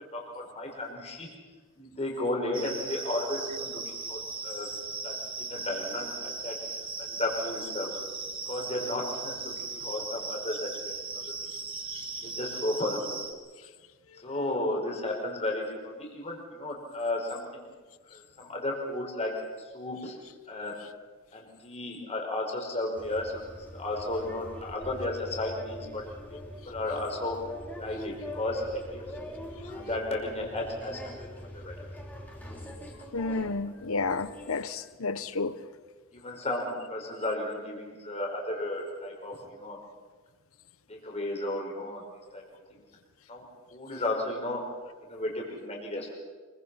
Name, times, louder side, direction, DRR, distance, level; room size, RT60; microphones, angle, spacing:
voice 1, 0.1-1.3 1.8-3.8 4.1-4.7 5.0-7.9 8.5-11.3 12.2-13.2 14.2-17.7 18.1-19.3 19.7-20.2 20.5-20.8 21.3-23.3 23.7-26.0 26.3-26.4 26.7-27.4 27.7-29.0 29.6-31.1 31.4-31.7 36.1-39.8 40.9-42.0 42.3-42.4 43.3-43.4 43.7-44.6 45.0-46.2, left 1 dB, 30° left, 5.3 m, -34 dB
sound 1, 2.5-13.3, right 4 dB, 25° right, 2.3 m, -38 dB
sound 2, 23.0-34.6, equal, 10° left, 3.5 m, -42 dB
voice 2, 33.1-35.6, left 3 dB, 85° left, 1.0 m, -31 dB
25.5 x 24.0 x 5.8 m
head